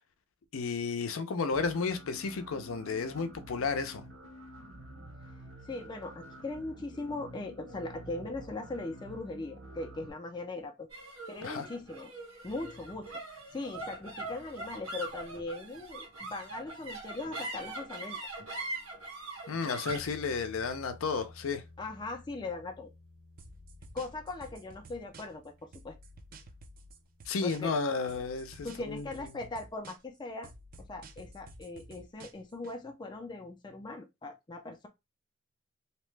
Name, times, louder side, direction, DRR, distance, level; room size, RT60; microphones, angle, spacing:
voice 1, 0.5-4.1 11.4-11.7 19.5-21.6 27.3-29.3, left 4 dB, 75° left, 0.5 m, -33 dB
sound 1, 1.5-10.1, right 1 dB, 60° right, 0.8 m, -49 dB
voice 2, 5.6-10.9 11.3-12.1 12.4-18.2 21.8-22.9 23.9-26.0 27.4-27.7 28.6-30.5 30.8-34.9, left 2 dB, 20° left, 0.4 m, -40 dB
sound 2, 10.9-27.5, right 2 dB, 80° right, 1.5 m, -44 dB
sound 3, 23.4-25.5 25.7-27.8 28.1-30.2 30.4-32.7, right 1 dB, 40° right, 0.4 m, -52 dB
2.8 x 2.1 x 3.2 m
head